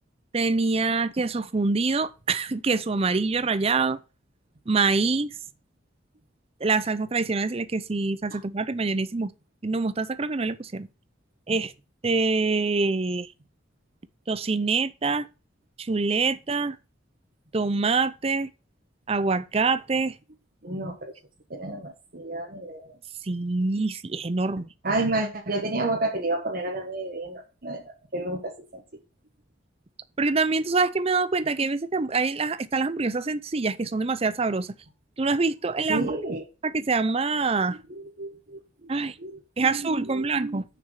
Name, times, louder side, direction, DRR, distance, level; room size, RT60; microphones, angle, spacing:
voice 1, 0.3-4.0 4.7-5.3 6.6-9.3 9.6-10.9 11.5-11.7 12.0-13.3 14.3-15.3 15.8-16.8 17.5-18.5 19.1-20.2 23.2-24.7 30.2-34.7 35.2-36.1 36.6-37.8 38.9-39.2 39.6-40.6, right 4 dB, 30° right, 0.6 m, -25 dB
voice 2, 20.6-21.1 21.5-23.0 24.8-28.8 35.9-36.4 37.9-38.9 39.2-40.6, right 2 dB, 50° right, 1.2 m, -31 dB
6.3 x 6.0 x 6.2 m
head